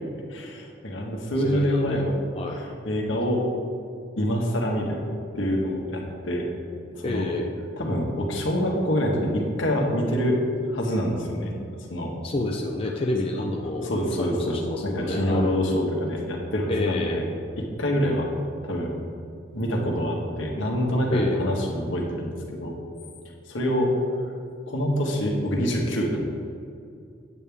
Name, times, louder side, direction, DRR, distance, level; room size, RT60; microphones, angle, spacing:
voice 1, 0.3-2.1 2.5-3.4 4.2-5.1 5.3-6.5 6.9-7.2 7.8-10.4 10.7-11.6 11.9-12.1 13.8-17.2 17.8-18.3 18.6-19.0 19.5-22.8 23.5-23.9 24.7-26.2, equal, 85° left, 0 dB, 1.5 m, -26 dB
voice 2, 1.4-2.0 2.3-2.6 7.0-7.6 12.2-13.9 14.2-15.5 16.7-17.2 21.1-21.5, left 2 dB, 30° left, 0 dB, 0.6 m, -29 dB
8.7 x 8.4 x 3.5 m, 2.4 s
head